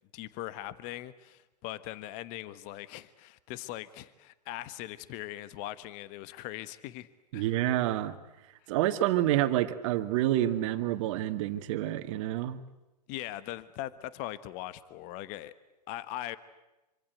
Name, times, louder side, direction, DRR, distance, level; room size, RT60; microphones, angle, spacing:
voice 1, 0.1-7.6 13.1-15.5 15.9-16.4, left 14 dB, 40° left, 15 dB, 1.3 m, -40 dB
voice 2, 7.3-8.1 8.7-12.6, right 13 dB, 50° right, 9 dB, 2.1 m, -28 dB
26.5 x 25.5 x 8.1 m, 1.0 s
hypercardioid pair, 120°, 21 cm